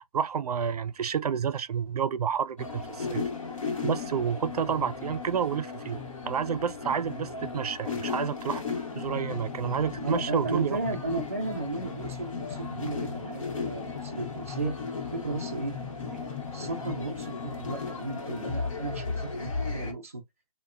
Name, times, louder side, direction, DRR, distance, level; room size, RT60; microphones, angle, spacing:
voice 1, 0.0-3.3 3.8-8.6 9.0-10.8, right 7 dB, 90° right, 0.4 m, -30 dB
sound 1, 2.6-19.9, left 5 dB, 60° left, 0.9 m, -35 dB
voice 2, 10.0-14.7 15.1-15.7 16.1-20.2, right 2 dB, 25° right, 0.3 m, -34 dB
3.1 x 2.1 x 2.4 m
hypercardioid pair, 175°, 19 cm